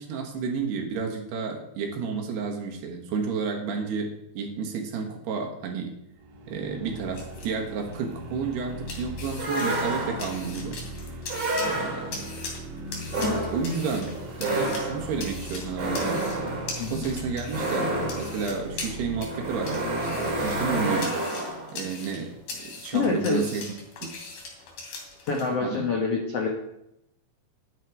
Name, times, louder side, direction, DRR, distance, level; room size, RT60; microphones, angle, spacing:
voice 1, 0.0-6.0 6.5-10.8 11.6-12.3 13.5-16.3 16.8-19.8 20.1-21.2 21.7-23.6 24.0-24.1 25.6-25.9, right 5 dB, 70° right, 1 dB, 3.5 m, -31 dB
sound 1, 6.2-21.0, equal, 90° right, 3.5 m, -40 dB
sound 2, 6.9-25.5, left 3 dB, 55° left, 4.1 m, -41 dB
sound 3, 9.4-10.5 11.3-12.3 13.1-21.8, right 2 dB, 30° right, 4.3 m, -30 dB
voice 2, 22.9-23.6 25.2-26.5, left 4 dB, 75° left, 1 dB, 1.4 m, -26 dB
11.5 x 10.0 x 4.6 m, 0.82 s
omnidirectional pair, 5.0 m